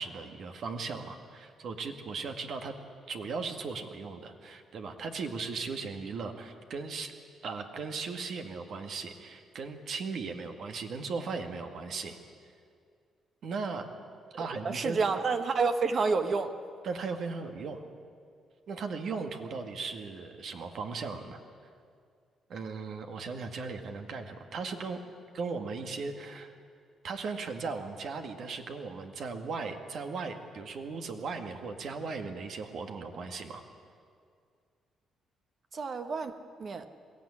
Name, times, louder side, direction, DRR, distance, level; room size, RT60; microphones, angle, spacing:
voice 1, 0.0-2.7 3.1-7.1 7.4-12.2 13.4-13.9 14.3-15.0 16.8-17.9 18.7-21.4 22.5-25.0 25.3-26.5 27.0-33.6, right 4 dB, 65° right, 5 dB, 1.9 m, -37 dB
voice 2, 14.6-16.5 35.7-36.3 36.6-36.9, right 4 dB, 50° right, 8 dB, 1.3 m, -29 dB
22.5 x 15.0 x 9.9 m, 2.2 s
cardioid pair, 90°, 0 cm